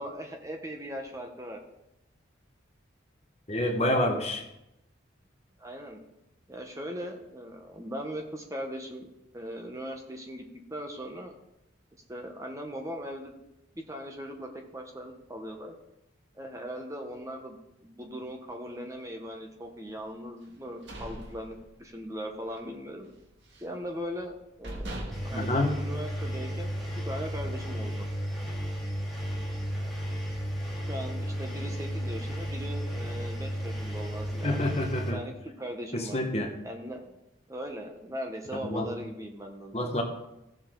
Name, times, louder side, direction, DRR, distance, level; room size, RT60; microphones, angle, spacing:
voice 1, 0.0-1.6 5.6-6.0 6.5-9.1 9.3-10.4 10.7-11.4 12.1-13.3 13.9-15.8 16.3-17.6 17.8-23.1 23.6-28.1 30.9-34.8 35.1-36.2 36.6-37.1 37.5-39.9, equal, 15° right, 3 dB, 1.0 m, -39 dB
voice 2, 3.5-4.4 25.3-25.8 34.4-35.2 35.9-36.5 38.6-38.9 39.7-40.0, left 1 dB, 35° left, 3 dB, 1.4 m, -28 dB
sound 1, 20.5-22.1 22.4-22.7 23.0-23.8 24.3-24.4 24.6-26.5, right 1 dB, 65° right, 1.9 m, -41 dB
Engine, 25.1-35.1, equal, ahead, 2.2 m, -33 dB
15.5 x 7.1 x 3.8 m, 0.89 s
head